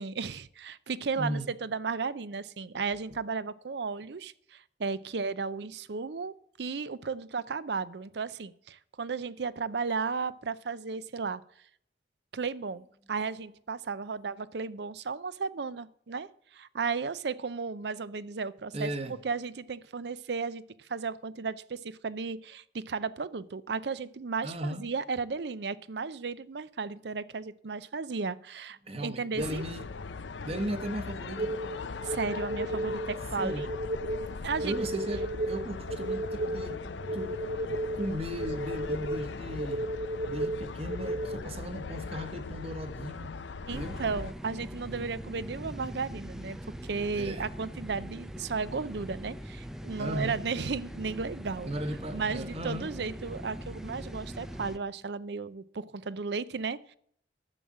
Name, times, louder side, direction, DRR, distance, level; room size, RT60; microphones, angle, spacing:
voice 1, 0.0-11.4 12.3-18.9 19.2-29.6 32.0-33.7 34.4-34.8 43.7-46.6 46.8-51.7 52.1-56.9, right 4 dB, 65° right, 0.6 m, -34 dB
voice 2, 1.2-1.5 18.7-19.1 24.4-24.8 28.8-29.8 30.4-31.5 33.4-33.7 34.6-36.8 37.1-39.9 40.3-43.3 43.7-44.0 47.1-47.5 50.0-50.4 51.6-52.9, right 1 dB, 35° right, 1.2 m, -36 dB
sound 1, 29.4-44.3, left 4 dB, 90° left, 0.6 m, -40 dB
sound 2, 31.4-41.3, right 1 dB, 80° right, 1.2 m, -34 dB
sound 3, 43.7-54.8, equal, 5° right, 0.6 m, -42 dB
11.0 x 7.2 x 7.4 m
head